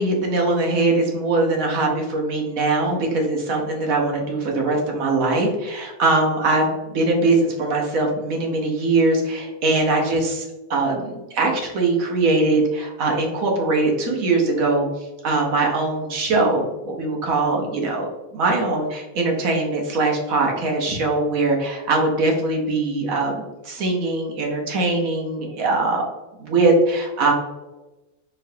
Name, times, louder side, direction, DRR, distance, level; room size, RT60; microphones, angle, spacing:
voice 1, 0.0-14.9 15.2-18.1 18.3-26.1 26.4-27.3, right 2 dB, 65° right, 0 dB, 1.2 m, -21 dB
4.0 x 3.1 x 2.7 m, 1.1 s
omnidirectional pair, 1.6 m